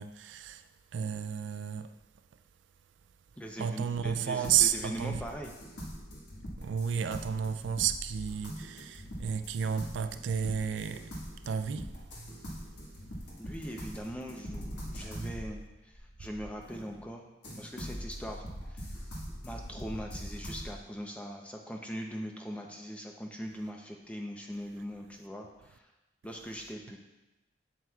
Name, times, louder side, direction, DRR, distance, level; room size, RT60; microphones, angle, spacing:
voice 1, 0.0-2.0 3.6-5.3 6.6-11.2 11.5-11.9, right 8 dB, 75° right, 0.3 m, -32 dB
voice 2, 3.4-5.5 13.3-17.3 17.6-19.0 19.4-25.9 26.2-27.0, equal, 5° left, 0.6 m, -41 dB
sound 1, 4.4-17.0 17.4-20.7, equal, 65° left, 1.5 m, -43 dB
7.7 x 7.7 x 2.4 m
head